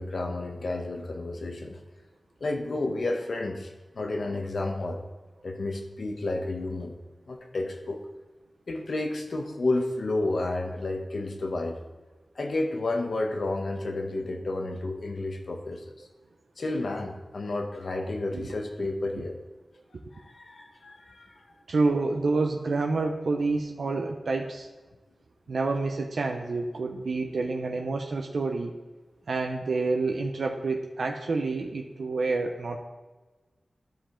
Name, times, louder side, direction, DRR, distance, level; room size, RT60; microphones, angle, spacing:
voice 1, 0.0-1.8 2.4-5.0 5.4-6.9 7.3-8.0 8.7-11.8 12.3-16.1 16.6-19.3 20.1-21.4, left 2 dB, 70° left, 3 dB, 1.1 m, -31 dB
voice 2, 21.7-24.7 25.5-28.7 29.3-32.8, right 3 dB, 80° right, 2 dB, 0.6 m, -28 dB
12.5 x 5.0 x 3.7 m, 1.2 s
wide cardioid pair, 75°, 0 cm